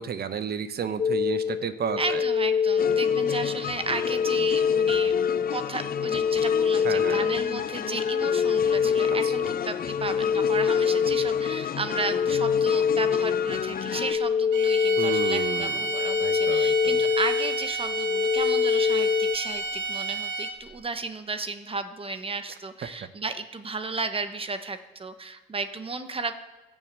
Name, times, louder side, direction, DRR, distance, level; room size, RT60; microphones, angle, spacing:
voice 1, 0.0-2.2 6.8-7.3 9.2-9.3 15.0-15.9 16.2-17.0 23.0-23.1, right 7 dB, 55° right, 12 dB, 0.9 m, -32 dB
sound 1, 1.0-19.4, left 7 dB, 30° left, 0.4 m, -25 dB
voice 2, 2.0-5.2 5.5-26.3, right 3 dB, 30° right, 9 dB, 1.1 m, -34 dB
sound 2, 2.8-14.1, left 8 dB, 50° left, 0.8 m, -34 dB
sound 3, 14.5-20.7, right 4 dB, 70° right, 1.8 m, -31 dB
14.0 x 7.5 x 8.2 m, 1.2 s
cardioid pair, 90°, 20 cm